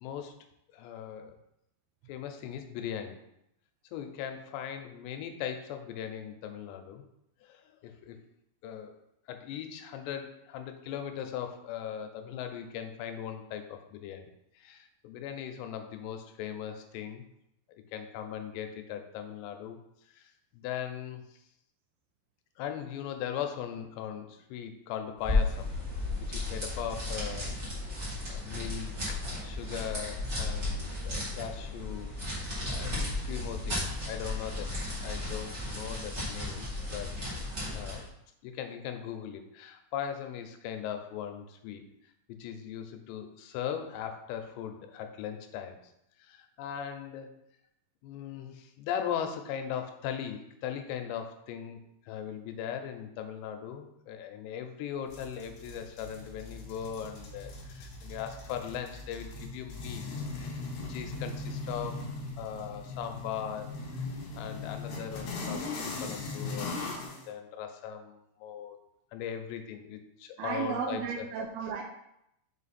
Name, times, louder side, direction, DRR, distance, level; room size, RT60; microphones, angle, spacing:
voice 1, 0.0-0.3 0.7-1.4 2.1-3.2 3.9-7.0 7.4-8.2 8.6-9.0 9.3-14.3 14.6-17.2 17.9-19.8 20.1-21.2 22.6-25.7 26.3-27.6 28.3-34.7 35.0-37.3 37.7-38.1 38.4-41.8 42.3-45.8 46.2-47.4 48.0-63.7 64.3-67.0 67.3-68.8 69.1-71.3, left 9 dB, 85° left, 6 dB, 2.9 m, -39 dB
sound 1, 25.2-38.1, left 2 dB, 30° right, 1.3 m, -34 dB
sound 2, 55.1-67.2, left 3 dB, 70° left, 1.8 m, -39 dB
voice 2, 70.4-71.8, right 6 dB, 80° right, 1 dB, 2.3 m, -34 dB
5.8 x 5.2 x 4.2 m, 0.80 s
omnidirectional pair, 4.9 m